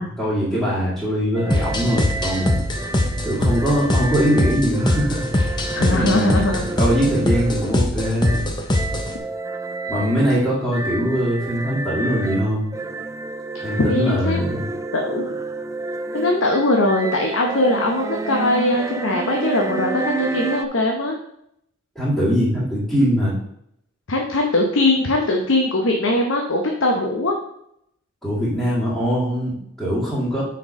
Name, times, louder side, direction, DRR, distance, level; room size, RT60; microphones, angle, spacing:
voice 1, 0.0-2.6 3.2-5.3 5.8-6.3 6.8-8.5 9.9-12.7 13.6-14.6 22.0-23.3 28.2-30.4, equal, 5° left, -11 dB, 2.1 m, -22 dB
sound 1, 1.3-20.7, right 3 dB, 15° right, 0.3 m, -30 dB
sound 2, 1.5-9.2, left 1 dB, 25° left, 0.7 m, -22 dB
voice 2, 5.7-6.7 13.8-14.6 14.9-15.3 16.1-21.2 24.1-27.4, left 2 dB, 90° left, 1 dB, 0.9 m, -21 dB
6.2 x 4.6 x 5.2 m, 0.75 s
head